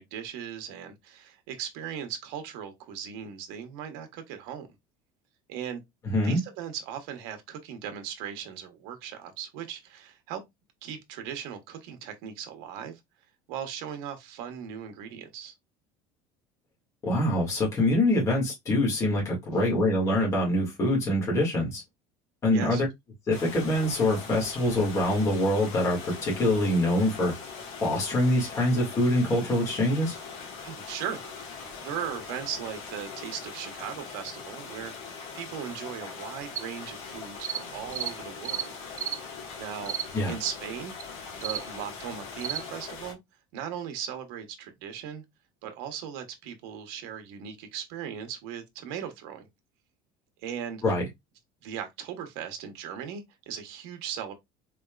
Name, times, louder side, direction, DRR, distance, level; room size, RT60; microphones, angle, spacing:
voice 1, 0.0-4.7 5.5-5.8 6.2-10.4 10.8-13.0 13.5-15.5 22.5-22.8 30.6-38.7 39.6-40.0 40.2-40.9 41.3-43.2 43.5-45.2 45.6-49.5 50.4-50.8 51.6-54.3, right 8 dB, 75° right, 1.1 m, -38 dB
voice 2, 6.1-6.4 17.0-21.8 22.4-22.9 23.3-27.3 27.8-30.2 40.1-40.4 50.8-51.1, left 1 dB, 25° left, 1.9 m, -25 dB
sound 1, 23.3-43.1, left 5 dB, 60° left, 1.5 m, -41 dB
sound 2, 36.5-36.6 37.4-37.6 37.9-38.1 38.4-38.7 39.0-39.2 39.9-40.1 40.4-40.5 41.0-41.1 41.4-41.6 42.4-42.6, right 9 dB, 25° right, 0.3 m, -32 dB
4.1 x 3.5 x 2.3 m
cardioid pair, 150°, 12 cm